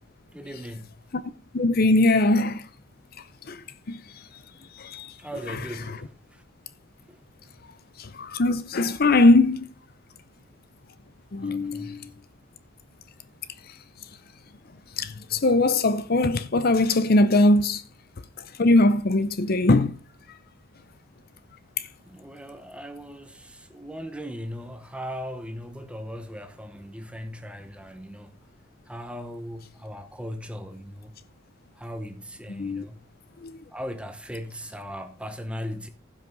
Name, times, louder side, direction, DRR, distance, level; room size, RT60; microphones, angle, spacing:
voice 1, 0.3-1.0 5.2-6.4 7.1-7.2 11.4-12.0 22.1-28.3 28.9-31.1 31.8-33.0 33.7-35.9, equal, 5° right, 1.0 m, -38 dB
voice 2, 1.5-2.7 3.5-4.3 4.7-5.1 5.5-5.6 8.0-9.7 11.3-12.1 13.7-13.8 15.0-17.8 18.4-20.0 32.5-32.9 33.4-33.6, left 2 dB, 45° left, 0.6 m, -21 dB
15.5 x 6.1 x 3.9 m
head